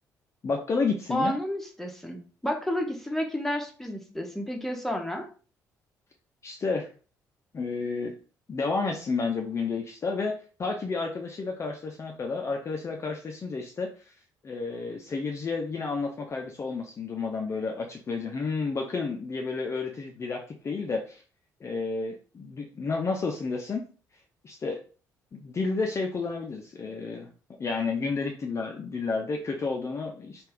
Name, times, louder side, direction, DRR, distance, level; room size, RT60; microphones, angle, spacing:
voice 1, 0.4-1.3 6.4-6.9 7.5-8.2 8.5-10.3 10.6-13.9 14.4-21.2 21.6-23.8 24.4-24.8 25.3-27.3 27.6-30.5, left 4 dB, 30° left, 2 dB, 0.5 m, -31 dB
voice 2, 1.1-5.2, equal, 5° left, 2 dB, 0.8 m, -31 dB
3.2 x 2.5 x 3.4 m, 0.38 s
figure-of-eight pair, 45°, 9 cm